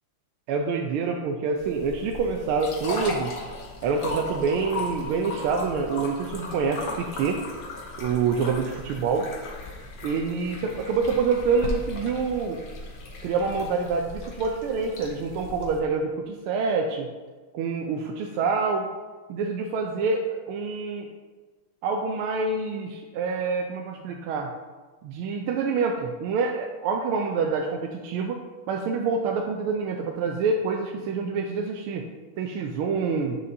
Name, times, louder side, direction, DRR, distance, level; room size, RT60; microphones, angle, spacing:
voice 1, 0.5-3.3 3.8-7.4 8.0-9.3 10.0-12.6 13.2-17.1 17.5-18.9 19.3-21.1 21.8-24.5 25.0-28.4 28.7-32.0 32.4-33.4, right 5 dB, 85° right, 2 dB, 1.5 m, -26 dB
sound 1, 1.6-15.8, left 2 dB, 55° left, 1.4 m, -37 dB
7.6 x 6.6 x 2.7 m, 1.3 s
omnidirectional pair, 2.3 m